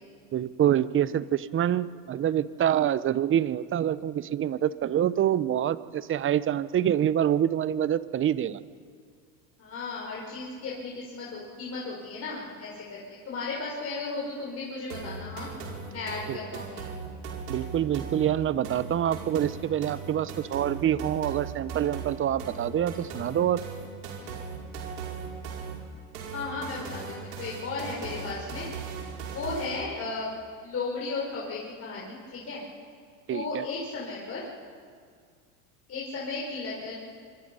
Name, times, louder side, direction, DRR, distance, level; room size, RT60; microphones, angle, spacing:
voice 1, 0.3-8.6 16.3-16.4 17.5-23.6 33.3-33.6, right 10 dB, 25° right, 16 dB, 0.8 m, -26 dB
voice 2, 9.6-15.5 15.9-16.9 24.2-24.4 26.3-30.3 30.6-32.6 33.3-34.4 35.9-36.9, left 3 dB, 30° left, -4 dB, 5.5 m, -35 dB
sound 1, 14.9-29.9, right 5 dB, 85° right, 5.2 m, -38 dB
25.0 x 25.0 x 5.6 m, 2.1 s
hypercardioid pair, 105°, 45 cm